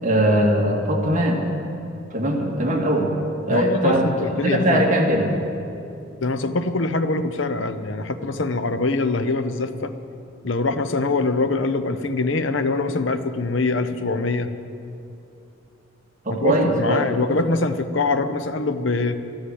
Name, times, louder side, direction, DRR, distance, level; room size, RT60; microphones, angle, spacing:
voice 1, 0.0-1.4 2.1-3.1 3.5-4.1 4.4-5.3 16.3-17.1, right 1 dB, 40° right, 0 dB, 2.0 m, -20 dB
voice 2, 3.5-4.8 6.2-9.9 10.4-14.5 16.3-19.1, left 3 dB, 65° left, 10 dB, 0.8 m, -23 dB
13.0 x 11.5 x 7.8 m, 2.7 s
head